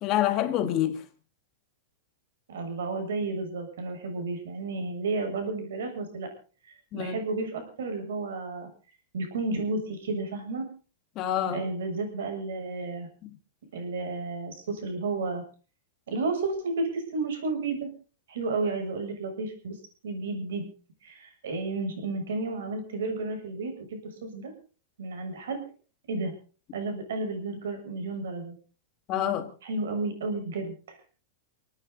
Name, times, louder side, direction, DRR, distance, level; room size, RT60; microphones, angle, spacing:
voice 1, 0.0-1.0 6.9-7.2 11.2-11.6 29.1-29.5, left 11 dB, 30° left, 1.7 m, -27 dB
voice 2, 2.5-6.3 6.9-8.7 9.1-10.7 11.5-13.1 13.7-15.4 16.1-17.9 18.3-19.8 20.0-20.7 21.0-24.5 25.0-25.6 26.1-26.3 26.7-28.5 29.6-31.0, right 3 dB, 90° right, 7.0 m, -32 dB
29.0 x 9.9 x 3.9 m
supercardioid pair, 165°, 0 cm